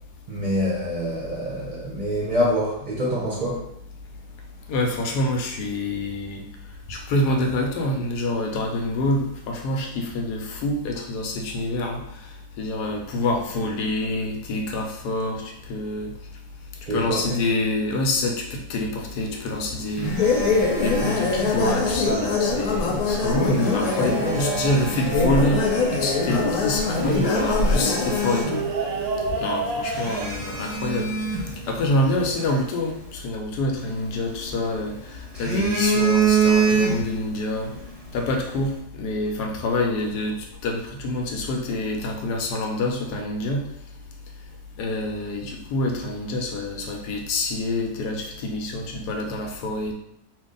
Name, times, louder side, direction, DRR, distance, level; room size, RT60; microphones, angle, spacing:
voice 1, 0.3-3.7 16.9-17.4, equal, 50° right, -6 dB, 0.5 m, -26 dB
voice 2, 4.7-6.4 6.9-12.0 12.6-16.1 16.9-20.2 20.8-25.6 25.9-28.6 29.4-31.1 31.7-37.7 38.1-40.4 40.6-43.6 44.8-49.9, left 1 dB, 90° left, 2 dB, 1.2 m, -26 dB
Telephone, 19.4-22.0 23.2-25.1 25.8-25.9 26.5-26.6 26.9-29.0 29.2-29.4 29.9-32.3 33.8-34.8 35.2-37.3 37.6-37.8, right 4 dB, 20° right, 0.9 m, -26 dB
sound 1, 20.0-28.4, left 4 dB, 70° left, 1.1 m, -23 dB
sound 2, 20.2-32.6, right 4 dB, 70° right, 0.9 m, -32 dB
2.9 x 2.6 x 3.7 m, 0.74 s
omnidirectional pair, 1.7 m